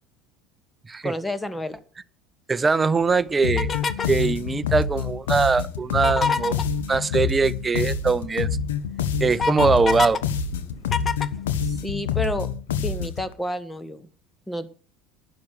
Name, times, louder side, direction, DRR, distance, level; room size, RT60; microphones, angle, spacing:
voice 1, 1.0-1.8 11.6-12.5 12.8-14.1 14.5-14.7, left 1 dB, 10° left, 1.4 m, -30 dB
voice 2, 2.5-3.7 4.1-6.6 6.9-8.5 9.2-10.2, right 4 dB, 20° right, 0.7 m, -22 dB
sound 1, 3.4-13.3, left 6 dB, 75° left, 1.2 m, -27 dB
sound 2, 3.6-4.2 5.9-6.7 8.3-8.4 8.8-10.2 10.5-12.1, left 5 dB, 30° left, 0.9 m, -26 dB
11.5 x 9.2 x 6.5 m
hypercardioid pair, 70°, 0 cm